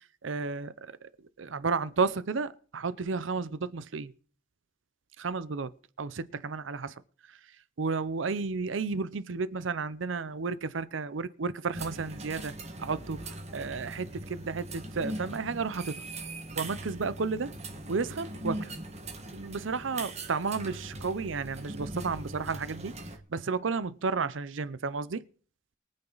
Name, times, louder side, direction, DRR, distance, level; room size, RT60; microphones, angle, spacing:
voice 1, 0.2-1.0 1.4-4.1 5.2-6.9 7.3-7.4 7.8-12.5 12.8-16.0 16.6-17.5 17.9-18.7 19.3-23.0 23.3-25.2, right 4 dB, 85° right, 0.7 m, -32 dB
sound 1, 11.7-23.2, right 1 dB, 35° right, 1.7 m, -40 dB
23.0 x 8.9 x 4.0 m
head